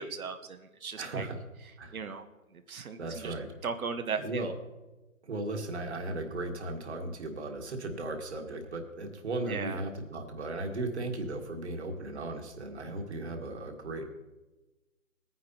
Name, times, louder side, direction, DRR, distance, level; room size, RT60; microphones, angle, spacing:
voice 1, 0.0-1.3 1.9-2.3 2.7-3.3 3.6-4.5 9.5-9.8, right 5 dB, 90° right, 8 dB, 1.0 m, -37 dB
voice 2, 1.0-1.4 1.8-2.0 3.0-3.5 4.2-4.5 5.2-14.1, right 2 dB, 55° right, 4 dB, 1.8 m, -36 dB
19.0 x 9.5 x 2.9 m, 1.1 s
hypercardioid pair, 170°, 41 cm